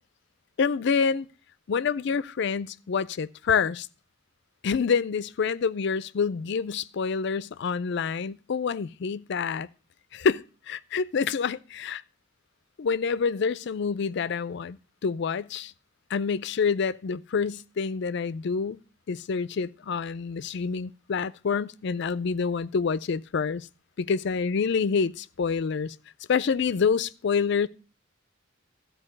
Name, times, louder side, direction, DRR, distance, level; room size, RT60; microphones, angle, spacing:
voice 1, 0.6-1.3 1.7-3.9 4.6-9.7 10.1-12.0 12.8-14.8 15.0-15.7 16.1-18.8 19.1-23.7 24.0-26.0 26.3-27.7, left 5 dB, 60° left, 0.4 m, -27 dB
13.0 x 4.5 x 6.5 m
head